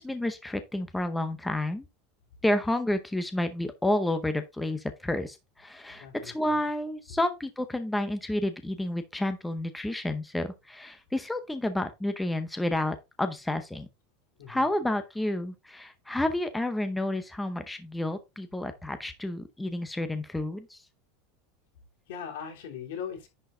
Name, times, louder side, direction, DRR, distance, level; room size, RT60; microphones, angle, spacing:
voice 1, 0.0-1.8 2.4-13.9 14.5-20.8, left 1 dB, 5° left, 0.8 m, -30 dB
voice 2, 6.0-6.6 14.4-14.7 22.1-23.3, left 8 dB, 80° left, 3.2 m, -39 dB
10.5 x 4.5 x 3.7 m
supercardioid pair, 160°, 0 cm